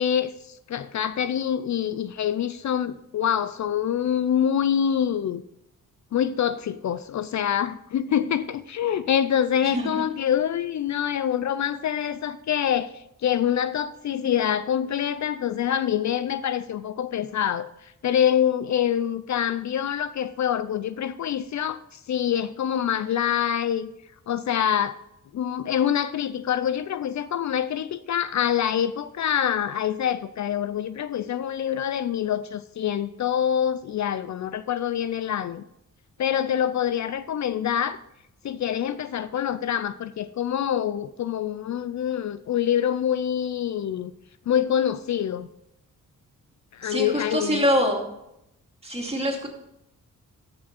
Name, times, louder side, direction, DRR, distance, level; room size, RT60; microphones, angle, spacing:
voice 1, 0.0-5.4 6.1-23.9 24.3-25.0 25.3-35.6 36.2-38.0 38.4-44.1 44.5-45.5 46.7-47.7, left 9 dB, 60° left, 14 dB, 0.5 m, -25 dB
voice 2, 46.8-48.1 48.8-49.5, equal, 20° right, 0 dB, 2.4 m, -25 dB
13.5 x 6.2 x 4.3 m, 0.82 s
cardioid pair, 100°, 33 cm